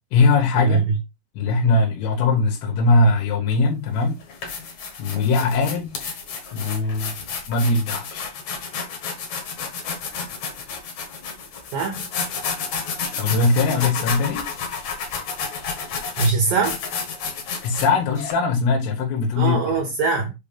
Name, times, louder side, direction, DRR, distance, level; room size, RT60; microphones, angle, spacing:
voice 1, 0.1-0.8 1.4-4.2 5.0-5.9 6.5-7.2 7.5-8.3 13.1-14.5 17.6-19.6, left 3 dB, 85° left, 3.9 m, -20 dB
mysound Regenboog Shaima, 3.5-3.7 4.2-18.3, left 5 dB, 60° left, 1.9 m, -31 dB
voice 2, 11.7-12.1 16.2-16.8 19.4-20.3, right 4 dB, 70° right, 2.1 m, -22 dB
8.0 x 2.9 x 5.1 m
omnidirectional pair, 5.7 m